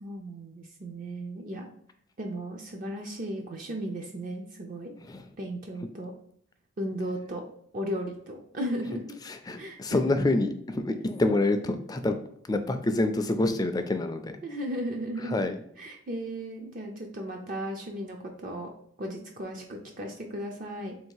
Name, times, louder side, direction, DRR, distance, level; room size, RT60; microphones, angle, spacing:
voice 1, 0.0-1.7 2.2-4.9 5.4-6.1 6.8-7.4 7.7-9.2 9.6-10.2 14.4-18.7 19.0-21.0, equal, 45° right, 2 dB, 0.4 m, -36 dB
voice 2, 9.5-12.2 12.5-14.3 15.3-15.6, left 2 dB, 20° left, 8 dB, 0.3 m, -26 dB
3.5 x 2.7 x 4.6 m, 0.67 s
head